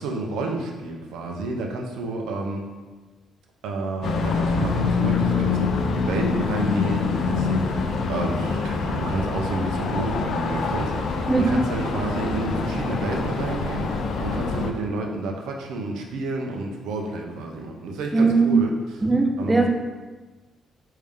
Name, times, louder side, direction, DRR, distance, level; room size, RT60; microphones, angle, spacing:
voice 1, 0.0-2.7 3.6-18.7 19.4-19.7, right 2 dB, 85° right, 1 dB, 0.5 m, -30 dB
sound 1, 4.0-14.7, left 4 dB, 65° left, 0.4 m, -25 dB
voice 2, 18.1-18.6 19.0-19.7, right 4 dB, 15° right, 3 dB, 0.4 m, -19 dB
3.5 x 2.7 x 3.4 m, 1.3 s
cardioid pair, 90°, 0 cm